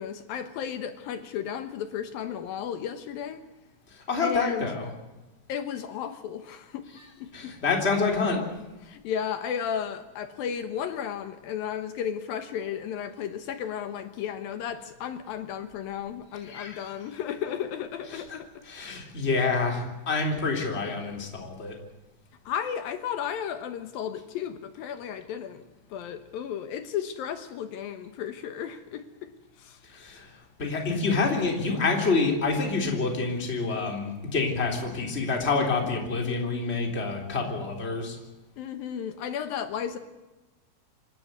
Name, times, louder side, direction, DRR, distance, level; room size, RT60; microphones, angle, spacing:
voice 1, 0.0-3.4 4.2-4.7 5.5-6.9 7.2-7.5 8.4-8.5 8.8-19.0 22.5-25.6 25.9-29.3 29.6-29.8 38.6-40.0, left 8 dB, 70° left, 10 dB, 2.4 m, -34 dB
voice 2, 4.1-4.9 7.3-8.4 16.4-16.8 18.1-18.2 18.6-21.7 29.9-30.3 30.6-38.2, left 4 dB, 15° left, 2 dB, 3.2 m, -27 dB
26.0 x 13.5 x 9.5 m, 1.1 s
omnidirectional pair, 5.1 m